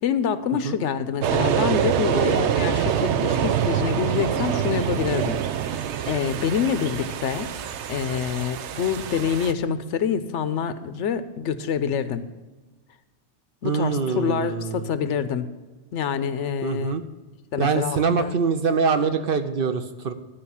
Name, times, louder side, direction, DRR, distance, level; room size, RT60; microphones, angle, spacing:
voice 1, 0.0-5.4 5.7-7.5 7.9-12.2 13.6-15.5 15.9-16.9 17.5-18.3, left 7 dB, 85° left, 12 dB, 1.0 m, -26 dB
sound 1, 1.2-9.5, right 8 dB, 80° right, 0.9 m, -25 dB
voice 2, 2.1-2.7 13.6-15.0 16.6-17.0 17.6-20.1, right 5 dB, 55° right, 9 dB, 0.8 m, -24 dB
12.0 x 5.2 x 7.0 m, 1.2 s
omnidirectional pair, 1.2 m